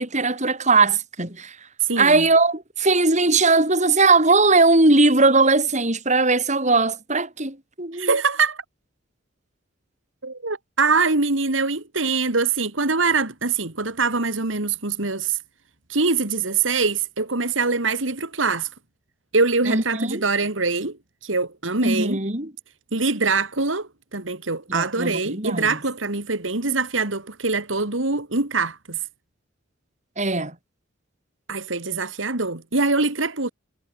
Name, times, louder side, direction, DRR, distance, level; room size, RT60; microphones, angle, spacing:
voice 1, 0.0-1.6 2.0-8.1 19.7-20.2 21.8-22.5 24.7-25.8 30.2-30.6, right 3 dB, 40° right, 7.5 m, -19 dB
voice 2, 1.8-2.2 7.9-8.6 10.2-15.4 15.9-18.7 19.3-21.0 21.2-22.2 22.9-29.0 31.5-33.5, right 4 dB, 85° right, 2.7 m, -23 dB
head